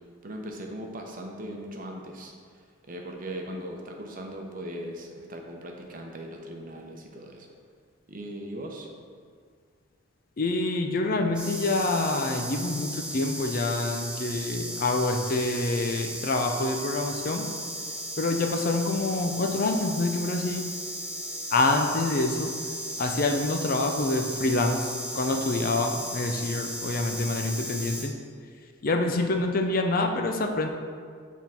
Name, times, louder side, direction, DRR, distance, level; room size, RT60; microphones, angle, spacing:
voice 1, 0.2-2.3 2.9-7.5 8.1-8.9, right 1 dB, 40° right, 1 dB, 0.8 m, -39 dB
voice 2, 10.4-17.5 18.2-20.6 21.5-22.5 23.0-24.9 25.1-28.1 28.8-30.7, left 2 dB, 45° left, 4 dB, 0.5 m, -26 dB
sound 1, 11.3-28.0, right 1 dB, 5° right, 0.8 m, -36 dB
8.2 x 3.7 x 4.3 m, 2.1 s
head